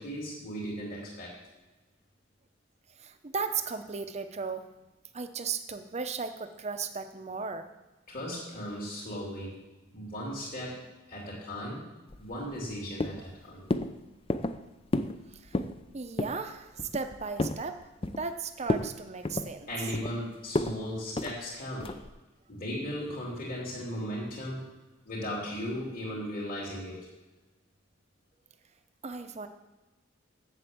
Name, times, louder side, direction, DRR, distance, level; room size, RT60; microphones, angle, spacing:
voice 1, 0.0-1.4 8.1-9.6 9.9-11.8 12.2-13.7 19.7-21.9 22.5-24.6 25.0-27.0, equal, 50° left, -6 dB, 3.0 m, -37 dB
voice 2, 3.0-4.7 5.1-7.7 15.3-15.6 15.9-17.8 18.2-19.7 29.0-29.5, right 5 dB, 35° right, 8 dB, 0.7 m, -36 dB
sound 1, 12.1-12.7 13.0-13.3 13.7-13.9 14.3-14.6 14.9-15.2 15.4-15.8 16.2-16.4 16.8-17.6 18.0-18.4 18.7-18.9 19.2-20.1 20.5-20.8 21.2-21.4 21.8-22.1, left 2 dB, 30° left, 0.5 m, -31 dB
7.9 x 7.0 x 7.8 m, 1.1 s
head